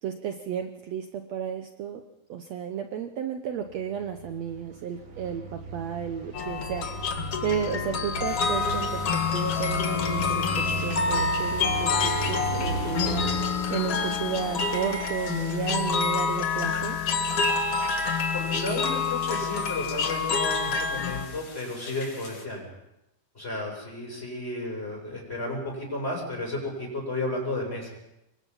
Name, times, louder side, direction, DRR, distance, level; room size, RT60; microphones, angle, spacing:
voice 1, 0.0-2.0 2.3-6.9 7.4-9.0 9.3-17.0, right 8 dB, 75° right, 6 dB, 1.5 m, -33 dB
sound 1, 3.7-13.4, right 3 dB, 45° right, 3.4 m, -36 dB
sound 2, 6.3-21.3, left 5 dB, 50° left, 1.9 m, -27 dB
sound 3, 8.3-22.4, left 3 dB, 70° left, 7.1 m, -44 dB
voice 2, 18.3-22.7 23.3-27.9, left 2 dB, 15° left, -1 dB, 7.9 m, -33 dB
26.5 x 23.5 x 5.6 m, 0.89 s
omnidirectional pair, 4.5 m